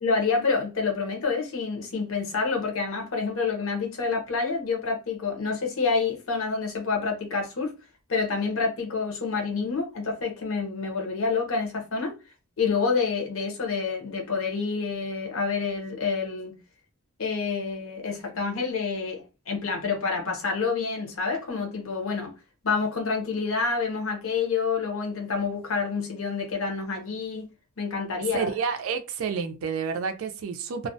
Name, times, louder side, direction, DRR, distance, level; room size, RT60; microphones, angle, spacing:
voice 1, 0.0-7.8 8.1-12.1 12.6-16.6 17.2-22.3 22.6-27.5 27.8-28.5, left 4 dB, 85° left, 0.7 m, -28 dB
voice 2, 28.3-30.9, right 6 dB, 85° right, 0.4 m, -29 dB
2.3 x 2.1 x 2.6 m
head